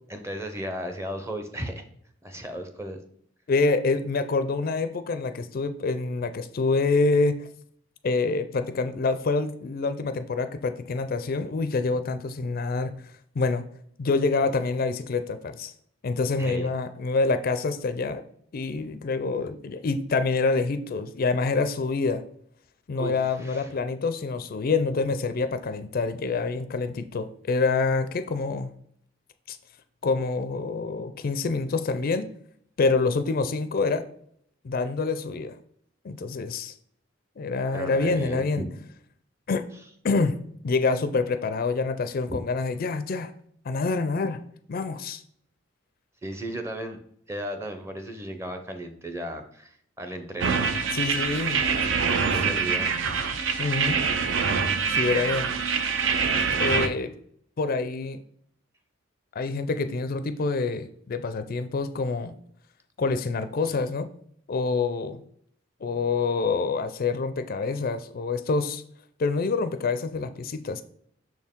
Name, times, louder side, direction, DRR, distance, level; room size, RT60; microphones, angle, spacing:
voice 1, 0.1-1.8 2.2-3.0 16.4-16.7 22.9-23.7 37.7-38.6 42.3-42.4 46.2-47.0 47.3-50.6 52.2-53.0, right 1 dB, 15° right, 6 dB, 0.6 m, -35 dB
voice 2, 3.5-7.4 8.0-12.9 13.4-13.6 14.0-15.7 16.0-18.2 18.5-22.2 22.9-28.7 29.5-29.6 30.0-32.3 32.8-34.1 34.6-35.6 36.0-36.7 37.4-38.6 39.5-39.7 40.0-40.4 40.6-43.3 43.7-44.4 44.7-45.2 50.9-51.6 52.4-52.7 53.6-54.0 54.9-55.5 56.6-57.1 57.6-58.2 59.4-62.3 63.0-64.1 64.5-65.2 65.8-68.8 69.2-70.8, left 3 dB, 45° left, 11 dB, 0.4 m, -26 dB
sound 1, 50.4-56.9, right 5 dB, 65° right, 0.5 m, -25 dB
6.3 x 4.4 x 3.6 m, 0.67 s
head